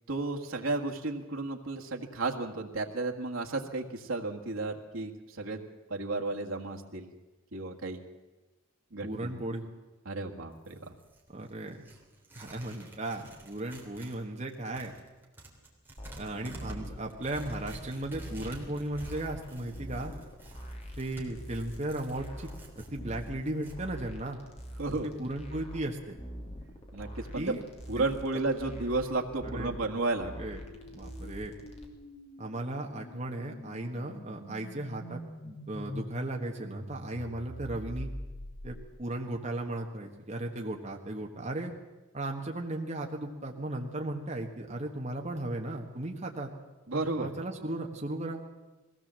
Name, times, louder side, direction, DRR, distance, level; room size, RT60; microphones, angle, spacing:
voice 1, 0.1-5.6 5.9-7.1 7.5-8.0 8.9-9.3 10.1-10.9 24.8-25.1 26.9-27.6 27.9-30.3 46.9-47.3, right 3 dB, 80° right, 2 dB, 1.8 m, -33 dB
voice 2, 9.0-9.6 11.3-11.9 12.3-14.9 16.2-20.1 21.0-22.5 22.9-24.4 25.0-26.2 27.3-27.6 28.0-28.1 29.5-29.7 30.2-30.6 30.9-31.5 32.4-38.1 38.6-41.7 42.1-46.5 47.2-48.4, right 1 dB, 35° right, 1 dB, 1.5 m, -36 dB
Tearing, 10.5-14.2 14.5-23.8, right 1 dB, 10° right, 3.1 m, -50 dB
sound 1, 16.0-31.9, equal, 30° left, 2.7 m, -45 dB
sound 2, 29.1-39.2, equal, 70° left, 3.1 m, -45 dB
21.0 x 16.5 x 7.5 m, 1.1 s
head